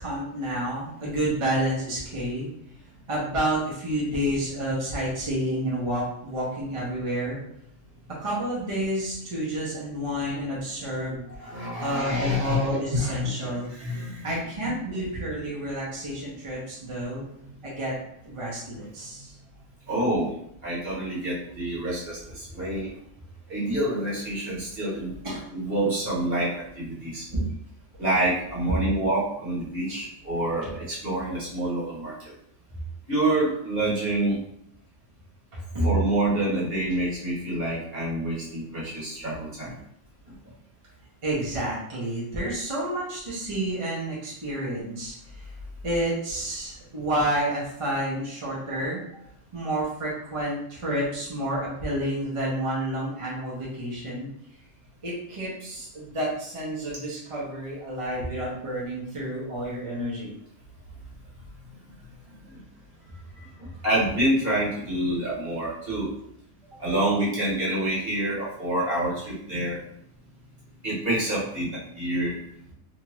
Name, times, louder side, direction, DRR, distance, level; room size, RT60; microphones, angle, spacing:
voice 1, 0.0-2.5 3.1-7.4 8.2-11.5 11.8-13.7 14.2-17.3 17.6-18.0 18.2-19.3 25.2-25.4 30.6-30.7 35.5-35.9 41.2-45.4 45.8-49.0 49.5-54.3 55.0-60.3 63.4-63.7 66.7-66.8, right 1 dB, 30° right, -6 dB, 0.7 m, -30 dB
voice 2, 11.3-14.4 17.4-17.6 19.9-20.3 20.6-22.9 23.5-25.1 25.5-27.3 28.0-32.3 33.1-34.4 35.8-39.8 40.2-40.3 62.3-62.6 63.6-66.1 66.8-69.8 70.8-72.3, right 1 dB, 45° right, -7 dB, 1.4 m, -27 dB
2.9 x 2.4 x 3.0 m, 0.72 s
omnidirectional pair, 1.4 m